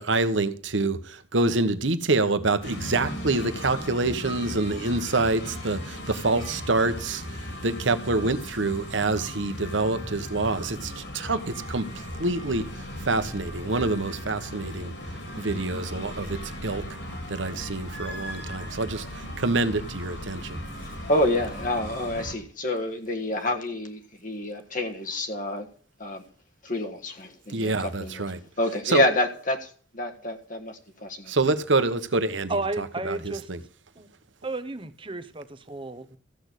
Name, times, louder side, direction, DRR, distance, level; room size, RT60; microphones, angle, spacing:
voice 1, 0.0-7.2 7.6-12.6 13.1-14.9 15.4-16.8 17.3-20.6 27.5-28.4 28.9-29.1 31.3-33.6, right 3 dB, 75° right, 1.2 m, -26 dB
sound 1, 2.6-22.4, equal, 65° left, 3.9 m, -37 dB
voice 2, 20.8-25.7 26.0-26.2 26.6-28.2 28.6-31.3, left 1 dB, 45° left, 1.6 m, -28 dB
voice 3, 32.5-33.5 34.0-34.1 34.4-36.2, right 2 dB, 25° right, 1.1 m, -32 dB
14.5 x 6.3 x 8.3 m
head